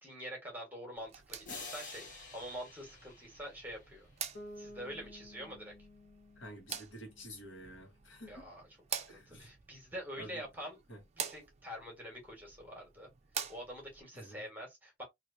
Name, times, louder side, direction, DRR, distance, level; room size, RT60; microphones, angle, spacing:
voice 1, 0.0-4.1 4.6-5.7 8.3-10.8 11.3-13.1 13.5-15.0, equal, 10° right, 1.5 m, -46 dB
sound 1, 1.0-14.0, right 8 dB, 35° right, 0.4 m, -47 dB
sound 2, 1.5-4.1, left 3 dB, 40° left, 1.3 m, -48 dB
Bass guitar, 4.3-8.2, left 1 dB, 55° left, 1.6 m, -54 dB
voice 2, 6.4-8.5 9.1-9.5 10.2-10.4 10.9-11.0 14.1-14.4, equal, 75° left, 1.4 m, -50 dB
3.1 x 2.7 x 2.6 m
head